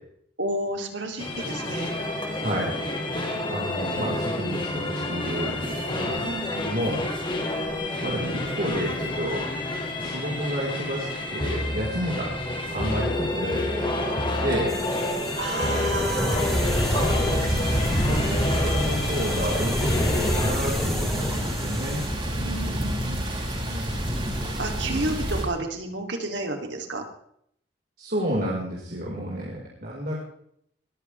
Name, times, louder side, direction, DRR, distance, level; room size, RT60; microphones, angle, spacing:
voice 1, 0.4-1.9 6.2-6.9 15.4-17.1 22.3-23.7 24.6-27.0, right 2 dB, 85° right, 4 dB, 2.9 m, -32 dB
sound 1, 1.2-20.5, left 1 dB, 30° left, 3.0 m, -29 dB
voice 2, 3.5-6.3 6.6-7.0 8.0-9.4 10.0-12.3 12.7-14.8 17.2-17.5 18.1-22.0 23.6-23.9 28.0-30.2, equal, 55° right, -5 dB, 4.7 m, -30 dB
sound 2, 14.7-22.1, left 1 dB, ahead, 4.8 m, -30 dB
sound 3, 16.4-25.4, equal, 30° right, 6.1 m, -28 dB
21.5 x 14.5 x 3.4 m, 0.68 s
head